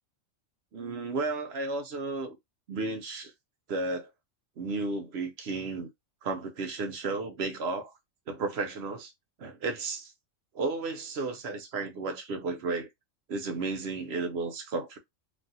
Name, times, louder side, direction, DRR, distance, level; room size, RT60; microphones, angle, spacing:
voice 1, 0.7-2.4 2.7-3.3 3.7-4.1 4.6-5.9 6.2-7.9 8.3-9.1 9.4-10.1 10.5-12.9 13.3-15.0, right 3 dB, 60° right, 0.8 m, -33 dB
3.1 x 2.3 x 2.6 m
omnidirectional pair, 1.3 m